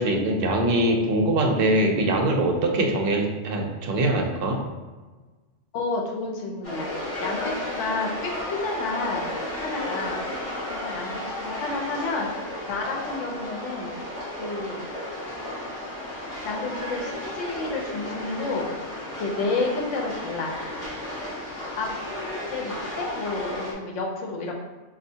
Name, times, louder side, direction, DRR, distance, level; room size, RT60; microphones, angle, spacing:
voice 1, 0.0-4.6, right 1 dB, 60° right, 2 dB, 0.7 m, -23 dB
voice 2, 5.7-6.9 7.2-9.2 9.6-10.2 10.7-12.3 12.7-13.9 14.4-14.9 16.4-18.7 19.2-20.5 21.8-21.9 22.5-24.5, left 3 dB, 85° left, 0 dB, 1.0 m, -30 dB
sound 1, 6.6-23.7, left 1 dB, 30° left, 1.0 m, -33 dB
4.3 x 2.4 x 2.7 m, 1.3 s
omnidirectional pair, 1.2 m